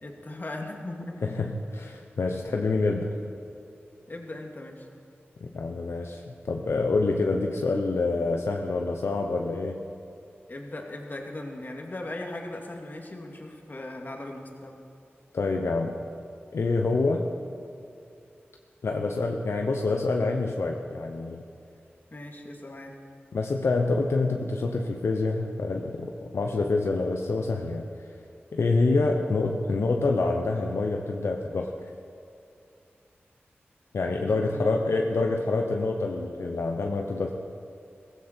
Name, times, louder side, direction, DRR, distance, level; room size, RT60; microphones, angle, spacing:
voice 1, 0.0-1.5 4.1-4.9 10.5-14.8 22.1-23.0 29.0-29.2 34.1-35.2, left 1 dB, 45° left, 1 dB, 2.3 m, -39 dB
voice 2, 1.2-3.2 5.4-6.2 6.5-9.8 15.3-16.0 16.5-17.2 18.8-21.4 23.3-27.8 28.5-31.7 33.9-37.3, left 3 dB, 80° left, 2 dB, 0.9 m, -26 dB
16.5 x 15.5 x 4.5 m, 2.6 s
cardioid pair, 45°, 4 cm